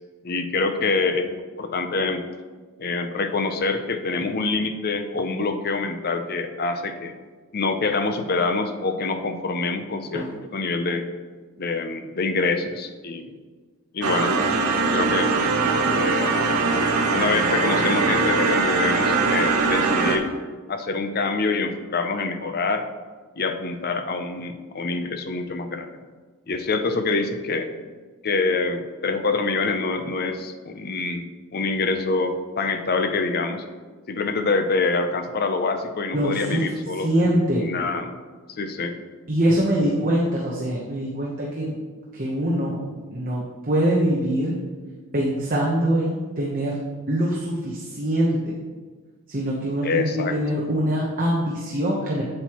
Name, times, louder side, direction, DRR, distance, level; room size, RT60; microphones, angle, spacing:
voice 1, 0.2-2.2 2.8-7.2 7.5-10.3 10.5-11.0 11.6-13.3 13.9-14.3 14.9-15.3 16.0-16.4 17.1-20.3 20.7-22.9 23.4-26.0 26.5-27.7 28.2-31.2 31.5-33.6 34.1-37.1 37.6-38.1 38.5-38.9 49.8-50.6, left 3 dB, 45° left, 7 dB, 0.6 m, -25 dB
sound 1, 14.0-20.2, right 4 dB, 90° right, 0.8 m, -21 dB
voice 2, 36.1-36.6 37.0-37.6 39.3-41.7 42.1-42.8 43.1-44.5 45.1-46.8 47.1-48.5 49.3-52.2, right 1 dB, 40° right, -3 dB, 1.0 m, -23 dB
8.1 x 7.6 x 3.0 m, 1.4 s
head